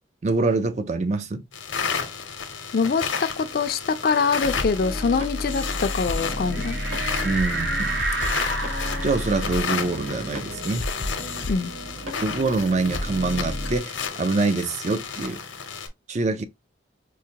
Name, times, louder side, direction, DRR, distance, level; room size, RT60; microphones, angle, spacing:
voice 1, 0.2-1.4 7.2-8.0 9.0-10.9 12.2-15.4 16.1-16.4, right 3 dB, 35° right, 0.4 m, -25 dB
sound 1, 1.5-15.9, left 6 dB, 85° left, 0.7 m, -32 dB
voice 2, 2.7-6.8 11.5-11.7, left 5 dB, 50° left, 0.4 m, -24 dB
sound 2, 4.4-13.8, left 1 dB, 85° right, 1.2 m, -32 dB
sound 3, 6.5-11.7 12.1-12.2 12.5-14.1, right 2 dB, 55° right, 1.1 m, -32 dB
4.6 x 2.1 x 2.8 m
head